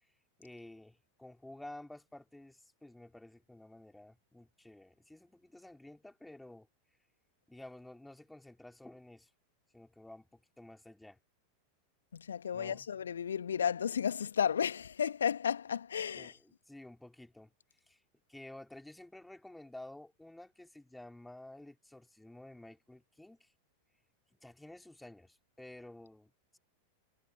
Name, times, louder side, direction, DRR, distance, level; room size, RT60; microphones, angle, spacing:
voice 1, 0.4-6.7 7.5-9.3 9.7-11.2 12.5-12.9 16.2-17.5 17.9-18.0 18.3-23.5 24.3-26.6, left 1 dB, 5° left, 3.7 m, -52 dB
voice 2, 12.1-16.4, left 8 dB, 70° left, 1.7 m, -33 dB
figure-of-eight pair, 90°, 0 cm